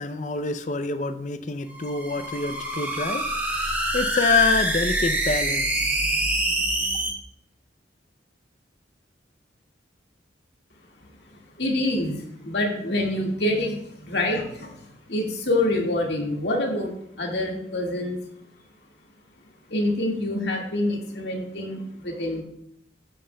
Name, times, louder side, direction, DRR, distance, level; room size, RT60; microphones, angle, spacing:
voice 1, 0.0-6.1, left 4 dB, 40° left, 10 dB, 0.5 m, -26 dB
sound 1, 1.7-7.1, right 1 dB, 10° right, 1.3 m, -26 dB
voice 2, 11.6-18.2 19.7-22.4, left 1 dB, 70° left, 0 dB, 1.9 m, -26 dB
12.0 x 8.6 x 2.3 m, 0.71 s
head